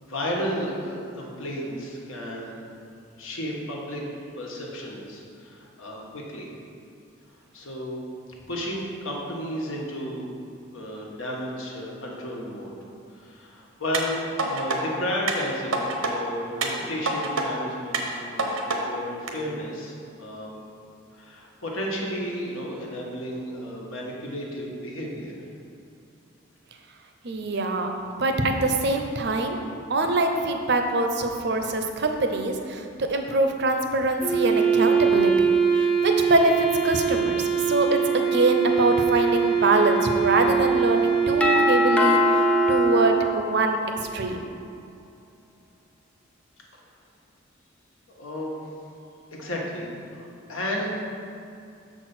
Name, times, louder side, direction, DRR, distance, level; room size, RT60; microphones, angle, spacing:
voice 1, 0.0-2.8 3.2-4.0 4.3-6.5 7.5-8.0 8.5-10.3 10.7-12.8 13.1-20.6 21.1-25.4 46.7-46.8 48.1-48.7 49.3-51.1, equal, 80° left, -2 dB, 1.4 m, -33 dB
sound 1, 13.9-14.8 15.3-16.1 16.6-17.5 17.9-18.8 19.3-19.4, right 3 dB, 85° right, 0.9 m, -27 dB
voice 2, 27.2-29.6 29.9-42.4 42.7-44.4, right 2 dB, 55° right, 5 dB, 0.6 m, -24 dB
Wind instrument woodwind instrument, 34.2-43.5, right 6 dB, 30° left, 0.7 m, -22 dB
Doorbell, 41.4-44.2, left 5 dB, 5° left, 0.3 m, -24 dB
6.7 x 4.5 x 6.0 m, 2.5 s
head